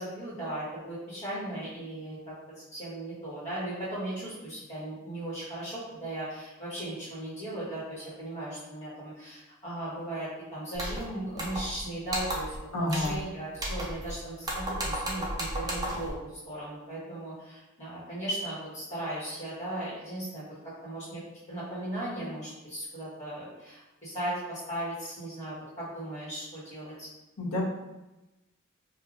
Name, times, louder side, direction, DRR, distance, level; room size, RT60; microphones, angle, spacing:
voice 1, 0.0-2.3 2.7-20.4 20.8-21.2 21.5-27.1, right 1 dB, 35° left, -10 dB, 1.5 m, -37 dB
sound 1, 10.7-11.0 11.4-11.8 12.1-12.6 12.9-13.2 13.5-14.1 14.4-16.1, right 1 dB, 20° right, 0.6 m, -34 dB
voice 2, 12.7-13.2 27.4-27.6, left 1 dB, 85° left, -3 dB, 0.9 m, -29 dB
4.8 x 2.6 x 2.5 m, 1.0 s
head